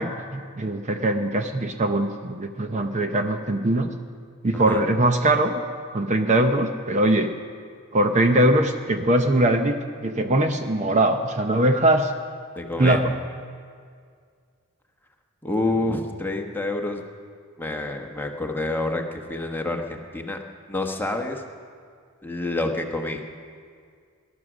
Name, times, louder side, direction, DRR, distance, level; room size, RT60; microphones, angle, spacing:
voice 1, 0.0-3.9 4.4-5.6 5.9-7.3 7.9-9.8 10.0-12.1 12.8-13.1, right 1 dB, 30° right, 6 dB, 0.7 m, -21 dB
voice 2, 12.5-13.0 15.4-17.0 17.6-20.4 20.7-21.4 22.2-23.2, left 2 dB, 10° left, 3 dB, 1.1 m, -28 dB
19.0 x 11.5 x 6.2 m, 2.1 s
head